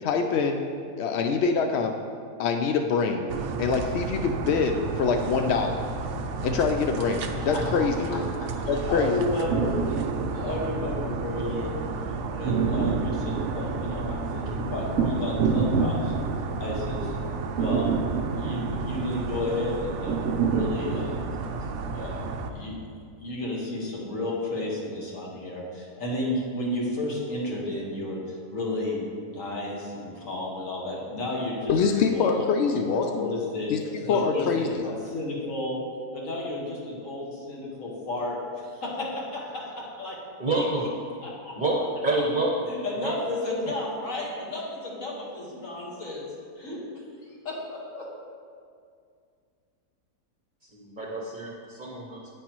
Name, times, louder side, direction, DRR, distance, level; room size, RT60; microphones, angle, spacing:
voice 1, 0.0-0.6 1.0-1.9 2.4-3.3 3.6-5.8 6.1-8.3 8.7-9.1 31.7-33.3 33.7-33.8 34.1-34.8, left 5 dB, 80° left, 5 dB, 0.6 m, -25 dB
sound 1, 3.3-22.5, right 4 dB, 65° right, 0.8 m, -29 dB
voice 2, 7.5-11.8 12.3-16.1 16.6-17.2 17.5-17.9 18.4-21.2 21.9-22.8 23.2-32.5 33.0-33.7 34.0-35.8 36.1-40.6 41.2-41.5 42.7-46.3 46.6-46.8 47.4-48.1, left 2 dB, 55° left, -4 dB, 2.0 m, -32 dB
voice 3, 40.4-40.9 41.6-42.7 43.0-43.1 50.7-52.3, right 2 dB, 35° right, -2 dB, 0.9 m, -28 dB
9.8 x 8.6 x 3.0 m, 2.2 s
omnidirectional pair, 1.7 m